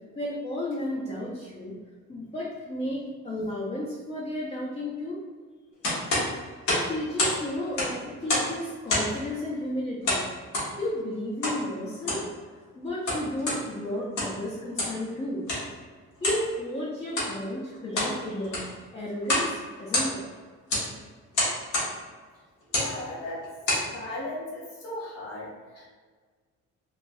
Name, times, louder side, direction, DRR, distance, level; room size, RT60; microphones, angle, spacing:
voice 1, 0.2-1.7 2.1-5.2 6.7-10.2 10.8-12.3 12.7-15.4 16.2-20.2, left 1 dB, 25° left, -7 dB, 0.7 m, -33 dB
sound 1, 5.8-7.4 7.7-8.5 8.9-9.2 10.0-10.7 11.4-11.6 11.9-12.3 12.9-13.6 14.0-14.4 14.7-15.0 15.5-15.6 16.2-16.4 17.1-17.3 17.7-18.1 18.4-18.8 19.2-19.5 19.8-20.3 20.7-20.9 21.3-21.9 22.6-22.9 23.4-23.9, left 1 dB, 75° left, 1.3 m, -27 dB
voice 2, 22.7-23.4 23.8-25.9, left 1 dB, 55° left, -4 dB, 1.3 m, -37 dB
3.3 x 2.5 x 2.6 m, 1.5 s
cardioid pair, 90°, 30 cm